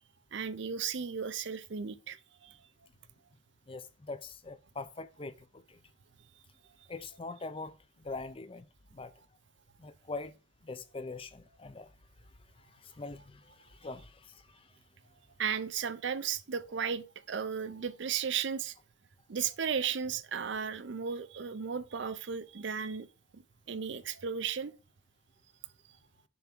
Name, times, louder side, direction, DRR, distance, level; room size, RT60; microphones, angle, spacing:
voice 1, 0.3-2.6 15.4-18.7 19.3-23.1 23.3-24.7, right 7 dB, 60° right, 0.5 m, -35 dB
voice 2, 3.7-5.8 6.9-8.7 8.9-9.1 9.8-10.3 10.6-11.9 12.6-14.7, left 3 dB, 25° left, 0.5 m, -43 dB
7.0 x 3.6 x 6.0 m
head